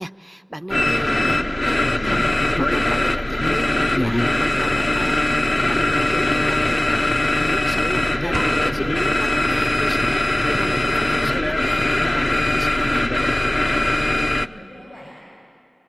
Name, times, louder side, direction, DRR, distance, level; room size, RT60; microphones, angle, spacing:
voice 1, 0.0-13.0, equal, 10° right, 12 dB, 0.5 m, -34 dB
sound 1, 0.7-14.5, left 1 dB, 35° left, 0.6 m, -20 dB
sound 2, 8.3-10.4, right 2 dB, 65° right, 0.9 m, -35 dB
voice 2, 14.0-15.1, equal, 90° left, -5 dB, 7.0 m, -44 dB
28.0 x 21.0 x 8.9 m, 2.6 s
wide cardioid pair, 60°, 0 cm